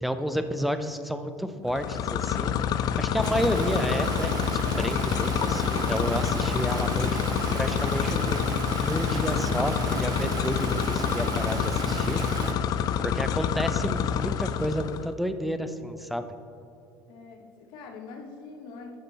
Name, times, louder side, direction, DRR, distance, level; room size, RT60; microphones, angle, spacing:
voice 1, 0.0-2.6 3.0-7.1 7.5-8.5 8.8-12.2 13.0-16.3, equal, ahead, 9 dB, 0.6 m, -31 dB
sound 1, 1.7-15.1, left 8 dB, 50° left, 0.5 m, -27 dB
Stream, 3.2-12.5, right 7 dB, 50° right, 0.6 m, -35 dB
voice 2, 12.8-13.9 17.1-19.0, left 4 dB, 65° left, 3 dB, 1.2 m, -44 dB
9.6 x 6.5 x 4.1 m, 2.7 s
supercardioid pair, 110°, 8 cm